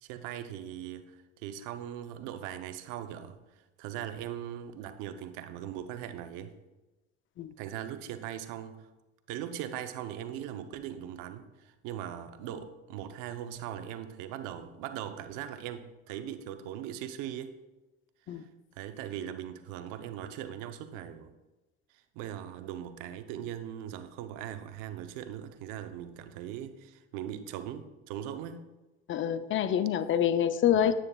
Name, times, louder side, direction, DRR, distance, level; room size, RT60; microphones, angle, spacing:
voice 1, 0.0-3.4 3.8-6.6 7.6-8.8 9.3-17.6 18.4-18.5 18.8-21.3 22.1-28.7 30.7-30.9, right 10 dB, 75° right, 9 dB, 0.7 m, -40 dB
voice 2, 29.1-30.9, left 9 dB, 40° left, 12 dB, 0.5 m, -26 dB
9.5 x 9.0 x 2.3 m, 1.1 s
supercardioid pair, 95°, 31 cm